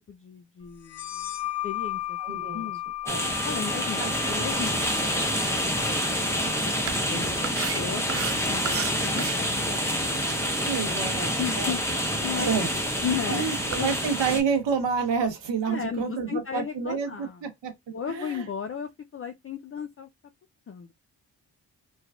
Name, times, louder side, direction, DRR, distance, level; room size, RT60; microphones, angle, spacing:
voice 1, 0.1-1.3 1.6-2.2 2.5-2.8 3.4-4.0 4.3-5.7 6.3-6.7 7.1-9.8 10.1-10.4 11.4-11.8 12.2-12.5 13.0-14.0 15.7-17.4 17.9-20.1 20.7-20.9, left 7 dB, 30° left, 0.4 m, -35 dB
sound 1, 0.8-8.1, left 14 dB, 80° left, 0.8 m, -36 dB
voice 2, 2.2-2.7 3.0-3.3 4.0-4.1 10.6-11.7 12.5-12.7 13.3-17.7 18.1-18.5, right 6 dB, 75° right, 0.9 m, -29 dB
sound 2, 3.1-14.4, equal, 5° left, 1.0 m, -27 dB
sound 3, 6.8-15.3, right 9 dB, 35° right, 0.4 m, -39 dB
3.2 x 2.3 x 2.3 m
supercardioid pair, 45°, 44 cm